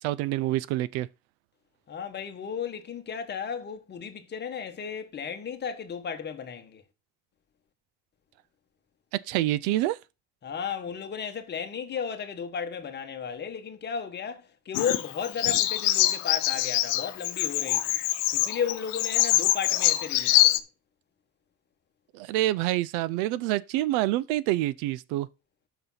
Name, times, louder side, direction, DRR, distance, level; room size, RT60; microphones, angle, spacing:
voice 1, 0.0-1.1 9.3-10.0 22.1-25.3, right 15 dB, 75° right, 0.6 m, -27 dB
voice 2, 1.9-6.8 10.4-18.0 18.3-20.6, left 7 dB, 25° left, 1.2 m, -34 dB
Bird vocalization bird call bird song, 14.7-20.6, left 16 dB, 85° left, 0.9 m, -24 dB
6.8 x 6.1 x 5.6 m
cardioid pair, 140°, 38 cm